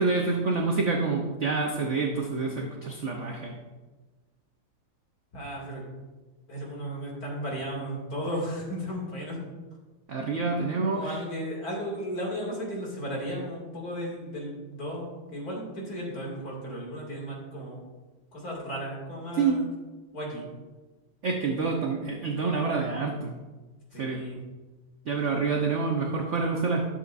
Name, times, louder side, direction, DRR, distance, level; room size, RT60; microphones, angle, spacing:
voice 1, 0.0-3.5 10.1-11.2 19.4-19.6 21.2-23.3 24.0-24.2 25.1-26.8, right 4 dB, 75° right, 1 dB, 0.6 m, -27 dB
voice 2, 5.3-5.8 6.5-9.4 10.9-17.8 18.3-19.7 20.1-20.5 23.9-24.4, equal, 45° left, -3 dB, 2.8 m, -35 dB
12.0 x 7.1 x 2.5 m, 1.2 s
omnidirectional pair, 2.3 m